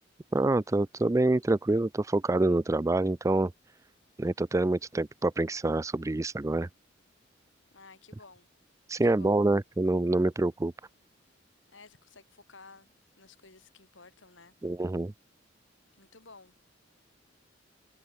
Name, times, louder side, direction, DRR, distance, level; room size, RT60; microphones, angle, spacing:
voice 1, 0.3-3.5 4.2-6.7 8.9-10.7 14.6-15.1, right 2 dB, 15° right, 0.4 m, -26 dB
voice 2, 7.7-8.5 9.0-9.4 11.7-14.5 16.0-16.5, left 4 dB, 75° left, 3.7 m, -54 dB
head